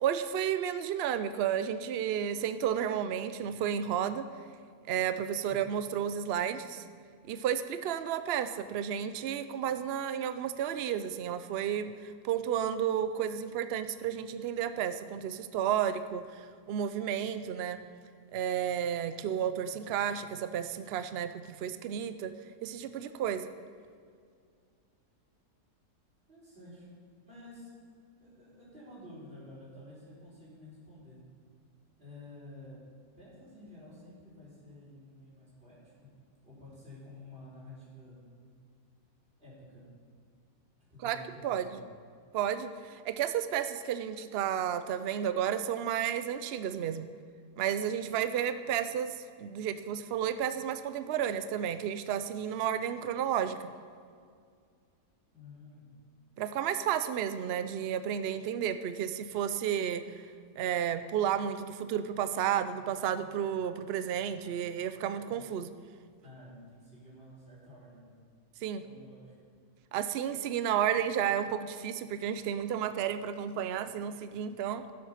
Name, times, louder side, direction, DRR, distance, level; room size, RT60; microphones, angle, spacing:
voice 1, 0.0-4.3 4.9-6.8 7.3-17.8 18.3-22.3 22.6-23.5 41.0-41.2 41.4-41.8 42.3-47.1 47.6-53.6 56.4-60.2 60.6-65.7 68.6-68.8 69.9-74.9, right 9 dB, 90° right, 11 dB, 0.5 m, -32 dB
voice 2, 26.3-26.9 27.2-27.7 28.2-31.2 32.0-32.8 33.2-36.1 36.4-38.3 39.4-39.9 40.9-41.8 55.3-55.9 66.2-68.2 68.8-69.4, left 1 dB, 35° right, -8 dB, 4.3 m, -51 dB
14.5 x 7.5 x 5.7 m, 2.1 s
omnidirectional pair, 1.7 m